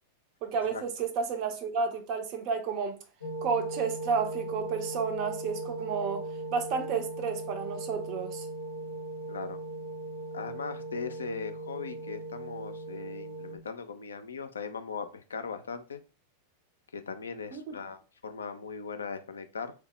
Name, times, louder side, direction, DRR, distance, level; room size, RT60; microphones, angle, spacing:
voice 1, 0.4-3.0 3.4-8.5 17.5-17.8, right 5 dB, 40° right, 0.5 m, -31 dB
sound 1, 3.2-13.5, right 1 dB, 90° right, 0.9 m, -38 dB
voice 2, 9.3-9.6 10.3-16.0 16.9-19.7, left 5 dB, 70° left, 0.3 m, -39 dB
3.1 x 2.0 x 3.0 m
figure-of-eight pair, 90°, 0 cm